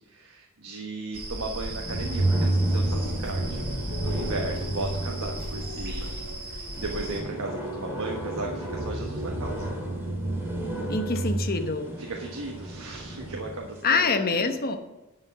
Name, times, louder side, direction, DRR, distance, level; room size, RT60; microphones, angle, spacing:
voice 1, 0.1-3.7 4.0-6.1 6.5-9.7 12.0-14.5, right 2 dB, 70° right, 0 dB, 1.3 m, -36 dB
sound 1, 1.1-7.2, right 1 dB, 50° right, 3.5 m, -36 dB
sound 2, 1.6-13.6, right 1 dB, 10° right, 2.4 m, -31 dB
Dog, 3.9-7.9 8.9-9.1 11.1-11.3, left 4 dB, 65° left, 1.3 m, -44 dB
voice 2, 10.9-11.9 13.8-14.8, left 4 dB, 45° left, 6 dB, 1.1 m, -25 dB
11.0 x 5.5 x 8.1 m, 1.0 s
head